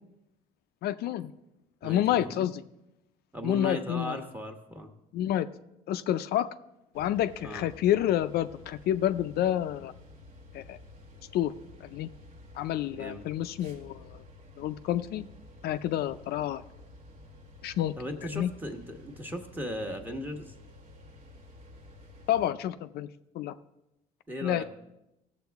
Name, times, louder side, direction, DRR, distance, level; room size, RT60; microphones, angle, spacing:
voice 1, 0.8-1.3 1.8-2.6 3.4-4.2 5.1-5.5 5.9-6.5 6.9-9.9 10.5-10.8 11.3-11.5 11.9-12.1 12.6-14.1 14.6-15.3 15.6-16.6 17.6-17.9 18.3-18.5 22.3-23.1 23.3-23.5 24.4-24.6, left 12 dB, 70° left, 10 dB, 0.4 m, -28 dB
voice 2, 1.8-2.3 3.3-4.9 7.4-7.7 12.9-13.3 18.0-20.5 24.3-24.6, equal, 10° right, 4 dB, 1.2 m, -37 dB
sound 1, 6.9-22.5, left 2 dB, 55° right, 1.3 m, -51 dB
16.0 x 7.3 x 3.5 m, 0.90 s
cardioid pair, 110°, 17 cm